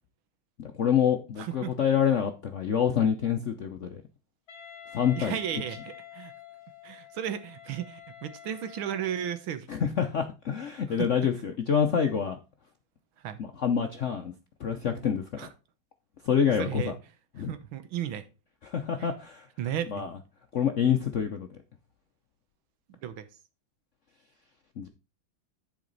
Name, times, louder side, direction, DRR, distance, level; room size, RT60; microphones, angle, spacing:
voice 1, 0.6-4.0 4.9-5.4 9.7-12.4 13.4-14.3 14.6-15.5 16.2-17.0 17.3-17.5 18.6-19.5 19.9-20.1 20.5-21.6 24.8-24.9, left 8 dB, 65° left, 0.7 m, -27 dB
voice 2, 1.4-1.7 5.2-6.3 6.8-9.7 11.0-11.1 13.2-13.4 15.4-15.5 16.6-16.9 17.5-18.2 19.6-20.0 23.0-23.3, right 10 dB, 80° right, 1.8 m, -34 dB
Wind instrument woodwind instrument, 4.5-9.5, left 9 dB, 45° left, 1.9 m, -47 dB
10.5 x 4.9 x 4.0 m
omnidirectional pair, 2.2 m